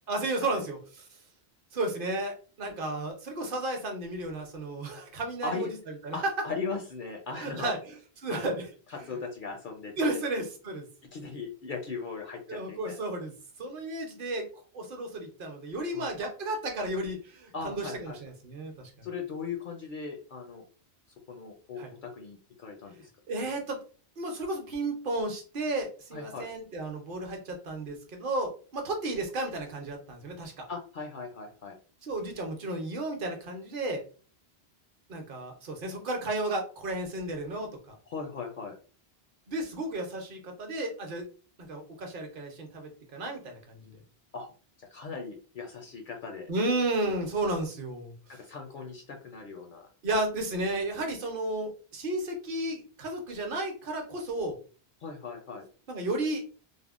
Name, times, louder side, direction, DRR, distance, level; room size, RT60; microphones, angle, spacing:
voice 1, 0.1-1.1 1.7-5.8 6.0-6.2 7.4-7.9 8.2-8.7 10.0-10.8 12.5-13.3 13.6-14.5 14.7-19.1 21.8-21.9 23.3-23.8 24.2-30.7 32.0-34.0 35.1-37.9 39.5-41.3 41.7-44.0 46.5-48.4 50.0-54.6 55.9-56.4, right 2 dB, 60° right, 3 dB, 0.9 m, -33 dB
voice 2, 6.1-7.8 8.3-8.6 8.9-10.2 11.1-13.0 15.9-16.1 17.5-18.2 19.0-20.6 21.3-23.1 26.1-26.5 30.7-31.8 38.1-38.7 44.3-44.5 44.9-46.5 48.3-49.9 55.0-55.7, left 4 dB, 60° left, 3 dB, 0.6 m, -38 dB
3.4 x 2.0 x 2.4 m, 0.38 s
omnidirectional pair, 1.1 m